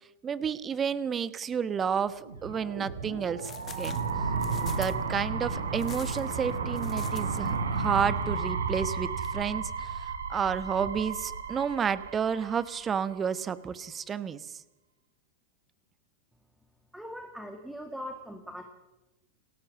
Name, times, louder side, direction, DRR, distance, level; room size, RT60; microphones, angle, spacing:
voice 1, 0.2-3.5 3.8-4.0 4.6-14.6, right 7 dB, 20° right, 16 dB, 1.1 m, -31 dB
sound 1, 2.1-13.0, right 4 dB, 70° right, 3.7 m, -33 dB
sound 2, 3.4-5.1 5.8-7.6 7.8-8.0 9.2-9.3, left 8 dB, 25° left, 1.9 m, -46 dB
voice 2, 16.9-18.6, equal, 5° right, 5 dB, 2.4 m, -40 dB
29.0 x 14.0 x 7.3 m, 1.0 s
figure-of-eight pair, 90°, 0 cm